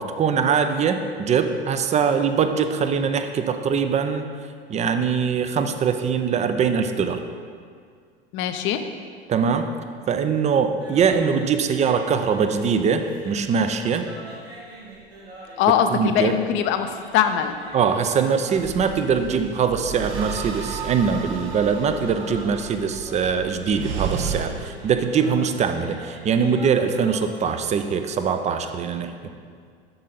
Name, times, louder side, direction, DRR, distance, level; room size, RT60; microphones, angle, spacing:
voice 1, 0.0-4.3 4.7-7.2 9.3-9.7 10.1-14.0 15.9-16.3 17.7-29.1, right 6 dB, 25° right, 8 dB, 0.5 m, -22 dB
voice 2, 8.3-8.8 15.6-17.6, left 9 dB, 40° left, 8 dB, 0.6 m, -22 dB
sound 1, 10.7-27.6, right 2 dB, 90° right, 2.0 m, -43 dB
sound 2, 18.5-24.4, right 7 dB, 65° right, 0.9 m, -33 dB
7.8 x 6.4 x 4.0 m, 2.1 s
figure-of-eight pair, 80°, 30 cm